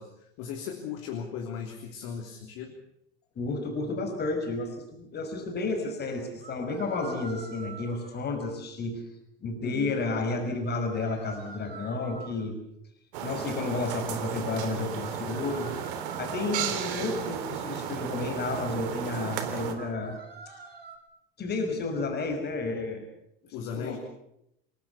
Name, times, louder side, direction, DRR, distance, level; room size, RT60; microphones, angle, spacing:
voice 1, 0.0-2.8 9.6-9.9 23.5-24.0, left 7 dB, 55° left, 3 dB, 3.5 m, -37 dB
voice 2, 3.4-9.0 9.4-12.6 13.2-15.8 16.2-20.2 21.4-23.1 23.4-24.0, left 3 dB, 35° left, 5 dB, 5.6 m, -31 dB
sound 1, 3.5-3.6 6.4-8.2 10.6-12.4 15.0-16.8 19.7-21.0, right 4 dB, 80° right, 4.9 m, -46 dB
sound 2, 13.1-19.8, right 8 dB, 60° right, 3.5 m, -34 dB
29.0 x 19.5 x 7.1 m, 0.78 s
figure-of-eight pair, 70°, 30 cm